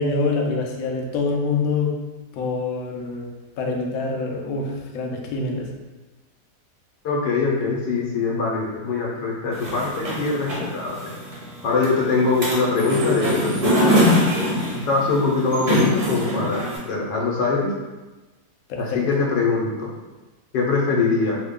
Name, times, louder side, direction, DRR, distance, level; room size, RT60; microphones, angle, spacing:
voice 1, 0.0-2.0 2.3-3.3 3.6-5.7 18.7-19.0, left 3 dB, 70° left, 1 dB, 0.9 m, -25 dB
voice 2, 7.0-11.1 11.6-14.1 14.7-17.7 18.8-19.9 20.5-21.4, left 4 dB, 85° left, -3 dB, 1.3 m, -23 dB
sound 1, 9.5-16.8, equal, 50° right, 0.6 m, -23 dB
3.1 x 2.1 x 3.5 m, 1.2 s
omnidirectional pair, 1.9 m